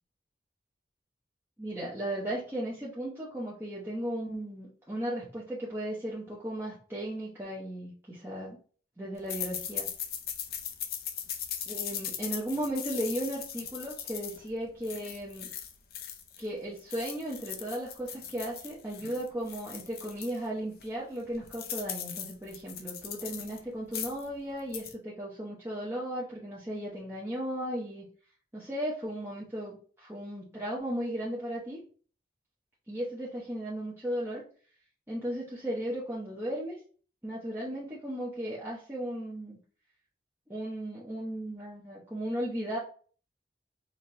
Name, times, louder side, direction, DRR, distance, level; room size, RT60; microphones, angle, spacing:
voice 1, 1.6-8.6 9.0-9.9 11.7-15.5 16.4-28.1 28.5-31.8 32.9-34.4 35.1-36.7 37.2-39.6 40.5-42.8, right 1 dB, 15° right, -6 dB, 0.7 m, -36 dB
sound 1, 9.3-16.5 16.8-20.4 20.8-20.9 21.2-23.6 23.9-24.3 24.6-24.9, left 9 dB, 60° left, 0.5 m, -39 dB
4.0 x 2.8 x 3.1 m, 0.42 s
head